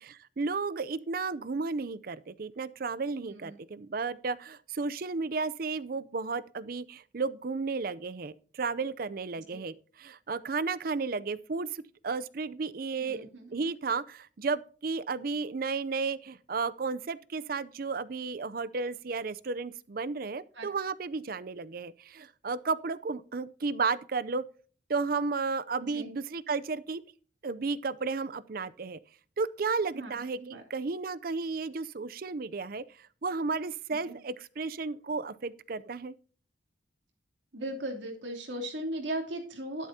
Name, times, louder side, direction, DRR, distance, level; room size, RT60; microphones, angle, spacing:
voice 1, 0.0-24.5 24.9-27.0 27.4-29.0 29.4-36.1, right 4 dB, 50° right, 0.5 m, -33 dB
voice 2, 3.2-3.5 9.5-9.6 13.0-13.5 20.5-20.7 25.9-26.1 29.9-30.6 34.1-34.2 37.5-39.9, right 1 dB, 75° right, 3.0 m, -37 dB
11.5 x 10.0 x 2.7 m
head